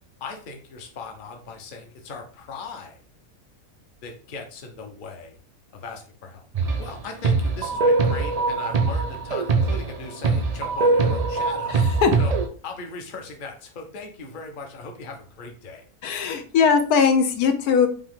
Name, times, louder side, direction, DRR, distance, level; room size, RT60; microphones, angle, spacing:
voice 1, 0.2-3.0 4.0-5.4 5.7-6.5 6.8-11.8 12.2-12.3 12.6-15.8, left 4 dB, 40° left, 3 dB, 0.8 m, -38 dB
sound 1, 6.5-6.9 7.2-12.5, right 3 dB, 70° right, 0.3 m, -22 dB
voice 2, 11.7-12.1 16.0-17.9, left 6 dB, 80° left, 7 dB, 1.2 m, -20 dB
5.3 x 2.8 x 3.6 m, 0.41 s
omnidirectional pair, 1.6 m